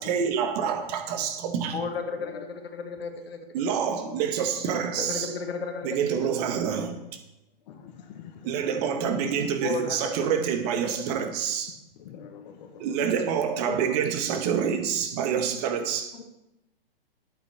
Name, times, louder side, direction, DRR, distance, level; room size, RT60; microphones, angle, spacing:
voice 1, 0.0-1.8 3.5-5.3 5.8-7.0 8.4-11.8 12.8-16.2, right 7 dB, 40° right, 6 dB, 1.7 m, -27 dB
voice 2, 1.7-3.5 4.9-6.3 9.6-10.3 10.6-11.2 13.7-13.8 16.1-16.2, left 4 dB, 75° left, 6 dB, 1.9 m, -34 dB
voice 3, 3.6-4.3 5.1-5.3 7.7-9.2 12.0-13.2, left 8 dB, 45° left, 6 dB, 1.8 m, -44 dB
11.0 x 8.9 x 4.3 m, 0.92 s
hypercardioid pair, 130°, 30 cm